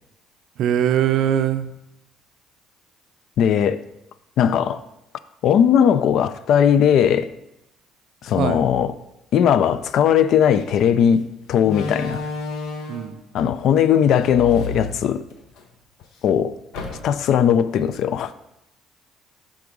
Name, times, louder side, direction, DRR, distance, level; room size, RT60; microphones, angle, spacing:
voice 1, 0.6-1.7 8.3-8.7 12.9-13.2, right 10 dB, 65° right, 0.4 m, -21 dB
voice 2, 3.4-3.8 4.4-4.8 5.4-7.3 8.2-8.9 9.3-12.2 13.3-15.3 16.2-16.6 17.0-18.3, left 8 dB, 60° left, 0.3 m, -18 dB
Slam, 10.5-10.7 11.6-13.2 14.2-15.6 16.0-16.1 16.7-17.4, left 3 dB, 85° left, 0.7 m, -31 dB
5.8 x 3.6 x 5.2 m
cardioid pair, 120°, 0 cm